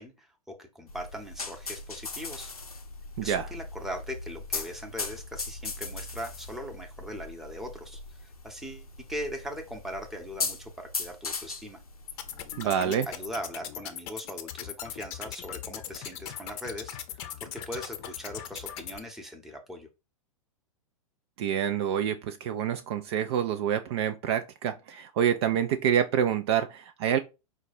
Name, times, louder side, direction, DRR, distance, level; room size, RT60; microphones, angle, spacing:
voice 1, 0.0-2.5 3.2-11.8 12.6-19.9, equal, ahead, 0.8 m, -40 dB
sound 1, 0.9-13.3, left 3 dB, 90° left, 0.7 m, -39 dB
sound 2, 12.1-19.0, left 10 dB, 40° left, 0.6 m, -40 dB
voice 2, 12.6-13.1 21.4-27.2, right 9 dB, 45° right, 0.4 m, -27 dB
4.7 x 2.2 x 4.1 m
figure-of-eight pair, 105°, 18 cm